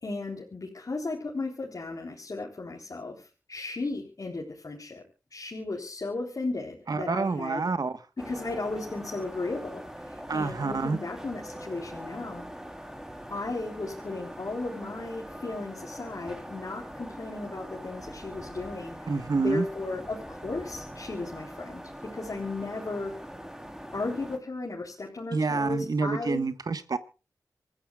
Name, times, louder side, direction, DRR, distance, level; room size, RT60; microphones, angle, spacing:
voice 1, 0.0-5.0 5.3-7.7 8.2-12.4 13.3-19.1 19.4-23.1 23.9-26.4, left 3 dB, 60° left, -2 dB, 3.9 m, -35 dB
voice 2, 6.9-8.0 10.3-11.0 19.1-19.6 25.3-27.0, right 4 dB, 70° right, 12 dB, 1.3 m, -28 dB
sound 1, 8.2-24.4, equal, 5° right, 3.3 m, -42 dB
27.0 x 14.0 x 2.4 m, 0.32 s
cardioid pair, 45°, 7 cm